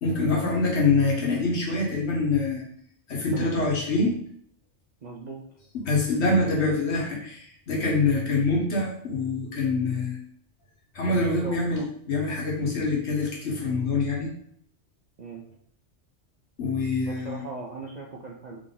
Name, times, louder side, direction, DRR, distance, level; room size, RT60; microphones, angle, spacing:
voice 1, 0.0-2.6 3.1-4.2 5.8-10.2 10.9-14.3 16.6-17.4, left 3 dB, 65° left, -2 dB, 1.3 m, -25 dB
voice 2, 3.3-3.7 5.0-5.4 11.1-11.9 15.2-15.4 17.0-18.6, right 3 dB, 55° right, -1 dB, 0.5 m, -38 dB
3.7 x 2.9 x 3.8 m, 0.65 s
omnidirectional pair, 1.2 m